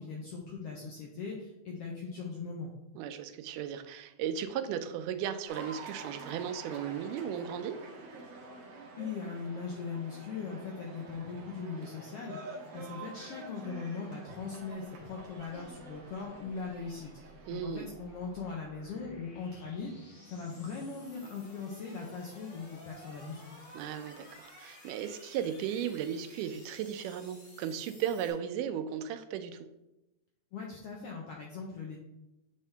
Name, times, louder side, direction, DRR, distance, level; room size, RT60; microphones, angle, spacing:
voice 1, 0.0-2.7 9.0-12.4 12.7-17.1 17.5-19.9 20.3-23.7 30.5-32.0, left 5 dB, 80° left, -1 dB, 1.3 m, -40 dB
voice 2, 3.0-7.8 17.5-17.9 23.7-29.6, right 9 dB, 90° right, 9 dB, 2.1 m, -36 dB
Cheering / Applause, 5.5-18.9, right 3 dB, 60° right, 1.9 m, -48 dB
sound 1, 15.3-28.3, equal, 40° left, 1.1 m, -54 dB
8.3 x 3.6 x 3.3 m, 0.91 s
omnidirectional pair, 3.6 m